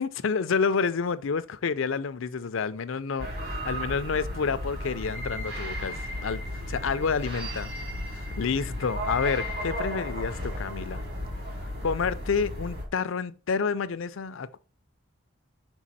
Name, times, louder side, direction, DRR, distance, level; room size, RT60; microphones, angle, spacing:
voice 1, 0.0-6.0 6.2-6.4 6.7-7.7 8.1-11.0 11.8-14.6, left 5 dB, 75° left, 0.5 m, -29 dB
sound 1, 3.2-12.9, equal, 50° right, 2.4 m, -34 dB
6.2 x 4.6 x 4.1 m
head